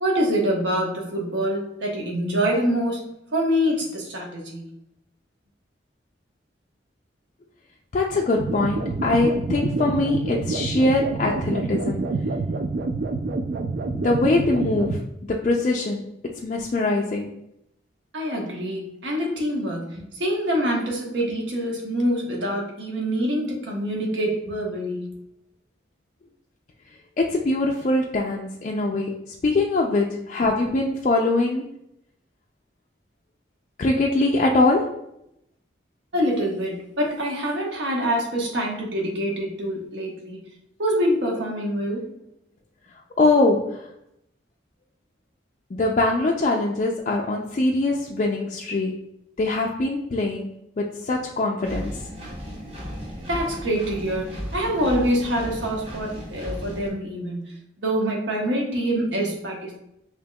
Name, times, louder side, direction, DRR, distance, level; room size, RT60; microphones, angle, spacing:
voice 1, 0.0-4.7 18.1-25.2 36.1-40.4 40.8-42.1 53.3-59.8, equal, 75° right, 0 dB, 1.0 m, -25 dB
voice 2, 7.9-12.1 13.9-15.0 15.4-16.1 16.4-17.3 27.2-31.8 33.8-35.0 43.2-43.9 45.7-49.1 49.4-52.0, left 2 dB, 40° left, -1 dB, 0.3 m, -23 dB
sound 1, 8.4-15.0, right 3 dB, 55° right, 0.3 m, -27 dB
Engine, 51.6-56.9, equal, 30° right, 0.9 m, -35 dB
5.2 x 2.8 x 2.2 m, 0.79 s
head